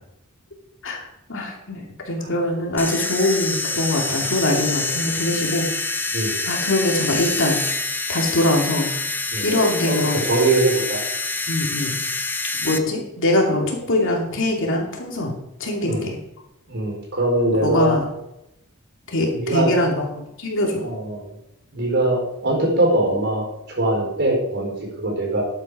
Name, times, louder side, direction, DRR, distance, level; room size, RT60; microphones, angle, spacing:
voice 1, 0.8-5.8 6.4-7.6 8.1-8.9 9.4-10.3 11.5-12.0 12.6-15.3 15.6-16.1 17.6-18.0 19.1-20.0 20.4-20.9, left 1 dB, 60° left, 0 dB, 2.7 m, -22 dB
sound 1, 2.8-12.8, left 3 dB, 10° left, 0.7 m, -26 dB
voice 2, 9.8-11.0 15.8-16.1 16.7-17.9 19.4-19.7 20.8-21.3 21.7-25.4, right 2 dB, 50° right, -1 dB, 4.3 m, -22 dB
11.5 x 8.3 x 4.9 m, 0.85 s
head